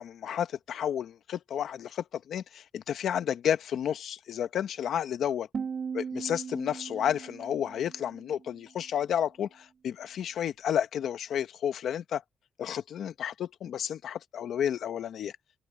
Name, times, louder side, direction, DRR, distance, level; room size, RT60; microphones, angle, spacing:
voice 1, 0.0-5.5 5.9-12.2 12.6-15.3, left 9 dB, 75° left, 1.2 m, -31 dB
sound 1, 5.5-8.5, right 6 dB, 50° right, 1.7 m, -38 dB
cardioid pair, 130°, 0 cm